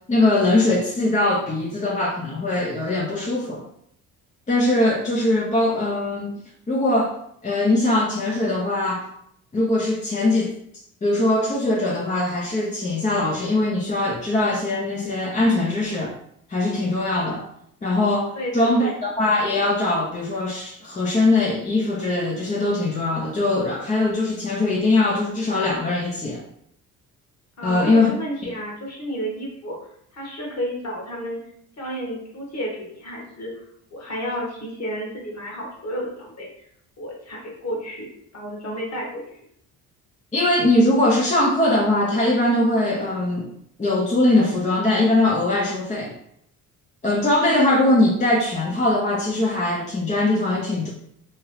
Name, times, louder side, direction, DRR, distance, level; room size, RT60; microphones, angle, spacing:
voice 1, 0.1-3.6 4.5-7.2 7.4-9.1 9.5-10.5 11.0-16.1 16.5-17.4 17.8-26.4 27.6-28.1 28.4-28.5 40.3-43.5 43.8-46.2 47.0-50.9, left 2 dB, 20° left, -3 dB, 0.6 m, -21 dB
voice 2, 18.3-19.2 27.6-29.8 30.1-31.4 31.8-33.5 33.9-36.5 37.0-39.4, equal, 40° left, -2 dB, 1.4 m, -31 dB
2.9 x 2.3 x 3.1 m, 0.71 s
hypercardioid pair, 60°, 40 cm